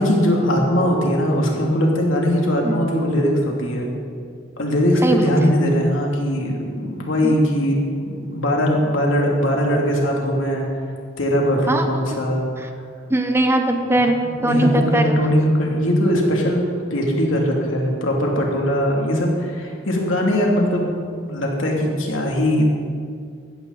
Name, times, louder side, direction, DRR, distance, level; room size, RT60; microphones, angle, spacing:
voice 1, 0.0-3.9 4.6-7.8 8.0-10.7 11.2-12.5 14.2-20.9 21.2-22.6, equal, 90° left, -1 dB, 2.8 m, -20 dB
voice 2, 13.1-15.1, right 1 dB, 15° right, 5 dB, 0.9 m, -20 dB
15.5 x 13.0 x 4.1 m, 2.2 s
head